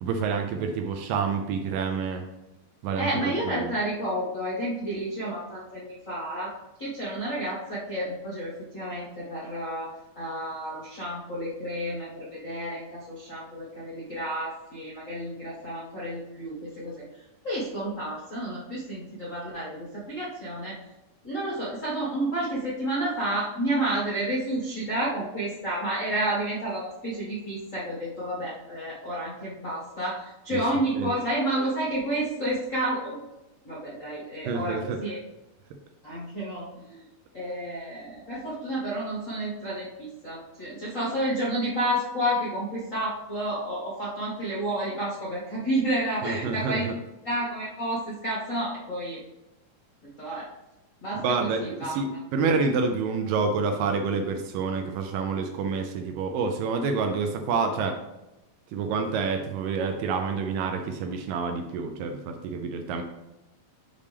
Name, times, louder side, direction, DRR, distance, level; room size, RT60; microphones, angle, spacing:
voice 1, 0.0-2.2 2.8-3.1 3.5-3.7 30.5-30.6 31.0-31.1 34.5-35.0 46.2-46.9 51.2-58.0 58.7-63.0, right 5 dB, 80° right, 5 dB, 2.1 m, -28 dB
voice 2, 2.9-6.5 6.8-9.9 10.1-17.0 17.4-20.8 21.2-33.2 33.6-35.2 36.0-37.0 37.3-46.9 47.2-49.2 50.2-50.5 51.0-52.0, right 1 dB, 75° left, -7 dB, 0.7 m, -30 dB
6.6 x 5.3 x 3.4 m, 0.96 s
omnidirectional pair, 4.3 m